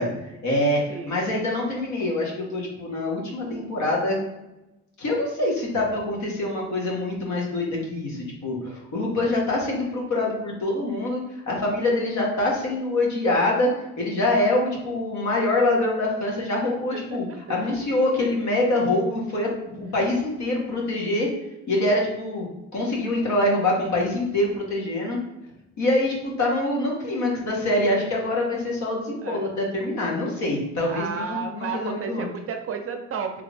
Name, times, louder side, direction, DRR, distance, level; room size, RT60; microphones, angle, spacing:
voice 1, 0.4-0.8 1.1-4.4 5.0-13.7 14.0-21.3 21.7-25.2 25.8-32.3, left 1 dB, 65° left, -2 dB, 1.2 m, -25 dB
voice 2, 16.9-17.4 29.2-29.5 30.8-33.3, right 5 dB, 50° right, 5 dB, 0.5 m, -33 dB
3.3 x 2.5 x 3.3 m, 0.94 s
cardioid pair, 90°, 30 cm